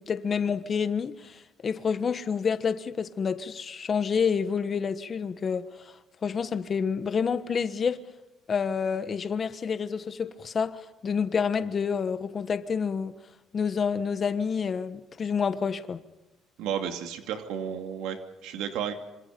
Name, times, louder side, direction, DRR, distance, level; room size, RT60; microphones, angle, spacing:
voice 1, 0.0-5.9 6.2-8.0 8.5-13.2 13.5-16.0, left 6 dB, 30° left, 1.3 m, -28 dB
voice 2, 16.6-18.9, right 8 dB, 85° right, 2.7 m, -33 dB
26.5 x 26.5 x 5.3 m
cardioid pair, 145°, 0 cm